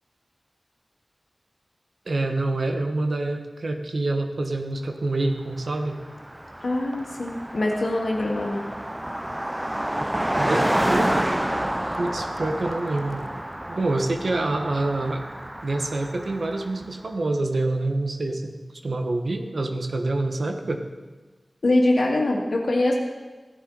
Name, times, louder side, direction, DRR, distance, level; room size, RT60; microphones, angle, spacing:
voice 1, 2.1-6.0 10.3-11.4 12.0-13.2 13.7-15.2 15.6-18.5 18.8-20.9, right 2 dB, 80° right, 5 dB, 1.1 m, -26 dB
Car passing by, 5.6-5.7 5.9-16.9, right 1 dB, 15° right, 0.3 m, -29 dB
voice 2, 6.6-8.6 21.6-22.9, left 2 dB, 90° left, 0 dB, 1.9 m, -23 dB
15.5 x 10.5 x 4.0 m, 1.3 s
wide cardioid pair, 45°, 0 cm